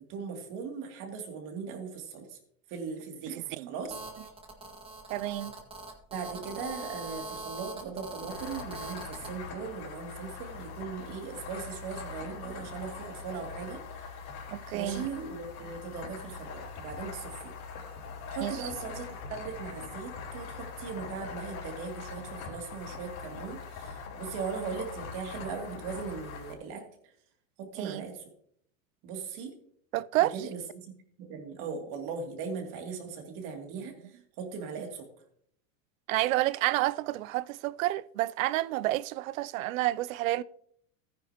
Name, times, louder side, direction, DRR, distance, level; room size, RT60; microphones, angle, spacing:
voice 1, 0.1-2.4 2.7-3.4 3.7-3.9 6.1-13.8 14.7-17.5 18.3-26.8 27.6-28.2 29.0-29.5 30.2-30.9 31.2-33.9 34.4-35.1, right 5 dB, 50° right, 2.7 m, -39 dB
voice 2, 3.3-3.7 5.1-5.5 14.5-15.1 18.4-18.7 27.8-28.0 29.9-30.4 36.1-40.4, right 16 dB, 75° right, 0.5 m, -30 dB
Telephone, 3.9-9.3, right 2 dB, 15° right, 1.7 m, -42 dB
sound 1, 8.3-26.5, left 5 dB, 45° left, 4.2 m, -42 dB
14.0 x 9.5 x 3.0 m
supercardioid pair, 125°, 41 cm